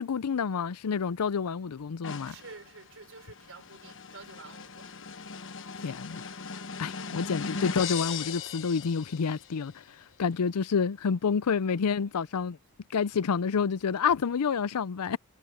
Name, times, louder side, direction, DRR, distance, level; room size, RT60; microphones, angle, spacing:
voice 1, 0.0-2.4 5.8-6.3 6.8-9.8 10.2-12.6 12.9-15.2, left 6 dB, 90° left, 0.5 m, -28 dB
sound 1, 2.0-9.6, left 5 dB, 60° left, 1.3 m, -39 dB
voice 2, 2.2-4.9, right 4 dB, 60° right, 4.9 m, -49 dB
head